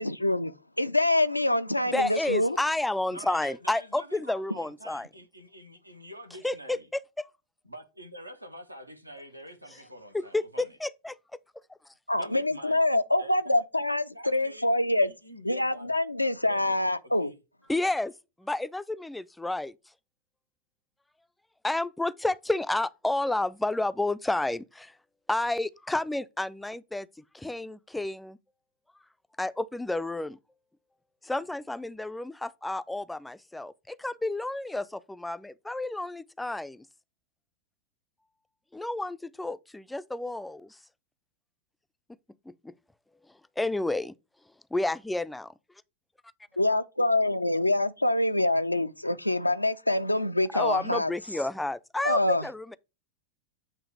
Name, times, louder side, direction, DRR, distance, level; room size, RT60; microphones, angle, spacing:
voice 1, 0.0-2.6 12.1-15.1 15.4-17.3 46.6-51.1 52.0-52.5, left 1 dB, 85° left, 0.4 m, -25 dB
voice 2, 1.9-5.1 6.4-7.3 9.7-9.8 10.1-11.2 17.7-18.1 18.4-19.7 21.6-25.0 25.3-27.1 27.3-28.4 29.4-30.4 31.2-36.9 38.7-40.8 42.5-42.7 43.6-44.1 44.7-45.5 50.5-52.8, left 2 dB, 5° left, 0.4 m, -31 dB
voice 3, 3.1-6.9 7.7-10.8 12.2-12.8 13.2-14.7 15.0-15.9 16.4-16.8 17.2-17.4, right 1 dB, 85° right, 0.9 m, -46 dB
8.1 x 3.0 x 4.6 m
figure-of-eight pair, 90°, 0 cm